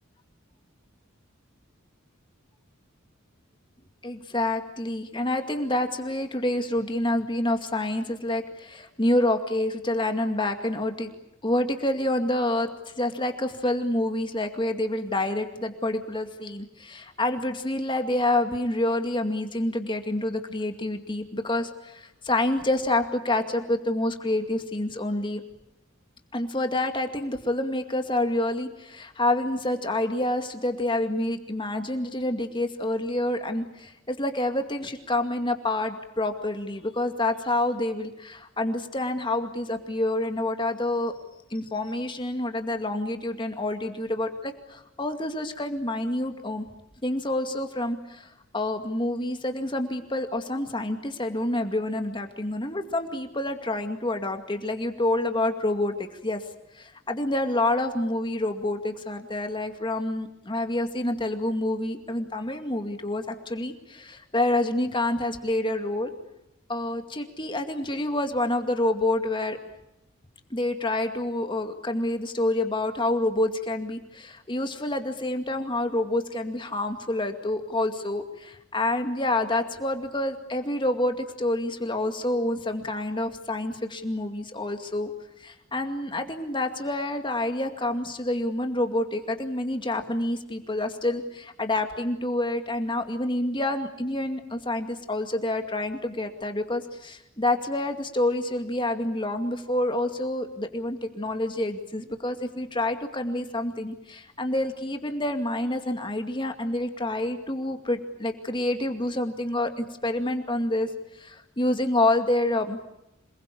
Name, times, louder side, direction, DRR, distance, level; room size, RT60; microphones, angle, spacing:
voice 1, 4.0-11.1 11.4-25.4 26.3-41.1 41.5-46.7 47.0-56.4 56.7-66.1 66.7-69.6 70.5-85.1 85.4-112.8, left 1 dB, 25° left, 6 dB, 2.3 m, -28 dB
27.5 x 21.5 x 8.6 m, 0.87 s
head